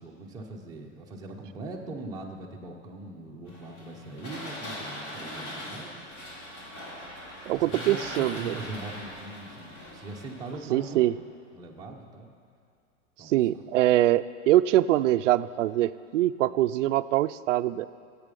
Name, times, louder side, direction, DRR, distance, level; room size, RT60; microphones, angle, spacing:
voice 1, 0.0-6.0 7.5-11.1 11.5-12.3 13.2-13.7, right 2 dB, 10° right, -2 dB, 1.1 m, -41 dB
sound 1, 3.5-11.1, left 1 dB, 40° left, 3.3 m, -41 dB
voice 2, 7.5-8.5 10.7-11.1 13.3-17.9, right 14 dB, 75° right, 15 dB, 0.5 m, -23 dB
15.0 x 8.4 x 5.3 m, 2.3 s
supercardioid pair, 150°, 37 cm